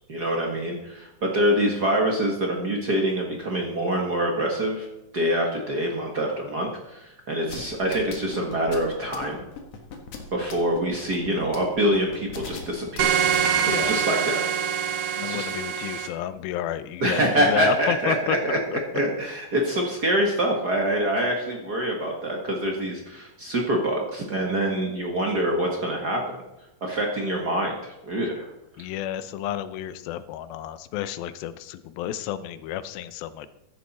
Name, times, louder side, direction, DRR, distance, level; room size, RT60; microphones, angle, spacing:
voice 1, 0.1-4.9 5.1-9.4 10.3-13.2 13.6-14.6 15.2-15.5 17.0-18.6 18.9-26.4 26.8-28.5, right 1 dB, 50° right, 0 dB, 1.2 m, -25 dB
sound 1, 7.5-13.9, left 6 dB, 55° left, 2.3 m, -38 dB
sound 2, 13.0-16.1, right 8 dB, 65° right, 2.2 m, -24 dB
voice 2, 13.6-14.0 15.2-18.8 28.8-33.5, left 11 dB, 85° left, 13 dB, 2.5 m, -31 dB
15.0 x 11.0 x 4.2 m, 0.93 s
omnidirectional pair, 4.2 m